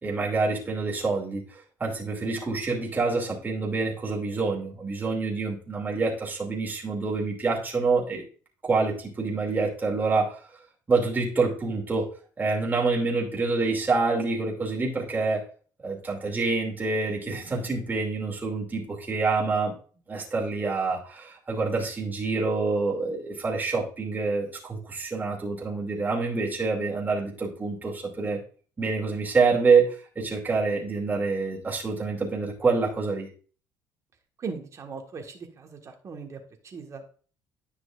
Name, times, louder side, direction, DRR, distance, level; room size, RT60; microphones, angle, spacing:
voice 1, 0.0-1.4 1.8-8.2 8.6-10.4 10.9-12.1 12.4-15.4 15.8-19.7 20.1-28.4 28.8-33.3, right 4 dB, 25° right, -2 dB, 2.6 m, -26 dB
voice 2, 34.4-37.1, right 5 dB, 40° right, 3 dB, 1.6 m, -39 dB
10.0 x 5.9 x 2.5 m, 0.40 s
cardioid pair, 100°, 8 cm